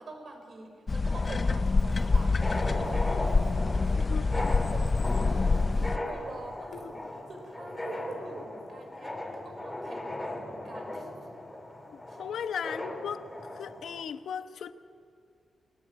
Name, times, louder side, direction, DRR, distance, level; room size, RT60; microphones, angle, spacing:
voice 1, 0.0-11.1 12.1-12.2, right 2 dB, 50° right, 5.7 m, -45 dB
sound 1, 0.9-6.0, left 3 dB, 30° left, 0.6 m, -26 dB
sound 2, 1.0-14.0, left 1 dB, 10° left, 3.9 m, -38 dB
voice 2, 11.9-13.3 13.6-14.7, left 7 dB, 85° left, 1.0 m, -36 dB
28.0 x 21.0 x 9.2 m
wide cardioid pair, 145°, 0 cm